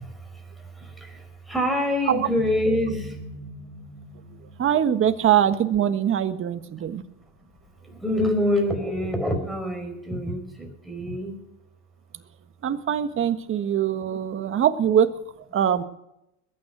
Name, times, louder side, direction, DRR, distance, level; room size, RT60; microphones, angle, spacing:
voice 1, 1.5-3.1 8.0-11.4, left 1 dB, ahead, 4 dB, 5.2 m, -25 dB
sound 1, 2.4-5.6, left 1 dB, 20° left, 3.9 m, -39 dB
voice 2, 4.6-7.0 12.6-15.1 15.5-15.8, right 9 dB, 30° right, 9 dB, 1.4 m, -22 dB
21.5 x 9.5 x 6.1 m, 0.83 s
supercardioid pair, 125°, 40 cm